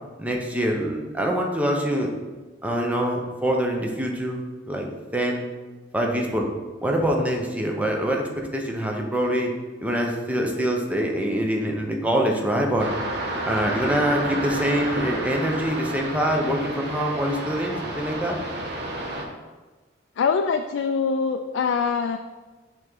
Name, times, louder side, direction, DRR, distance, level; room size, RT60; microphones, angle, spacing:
voice 1, 0.2-2.1 2.6-5.5 5.9-6.5 6.8-9.5 9.8-12.9 13.4-18.4, equal, 10° right, 0 dB, 0.8 m, -25 dB
sound 1, 12.8-19.2, right 1 dB, 65° right, 1.0 m, -31 dB
voice 2, 20.2-22.2, left 5 dB, 85° left, 6 dB, 0.3 m, -23 dB
6.2 x 3.6 x 5.5 m, 1.3 s
head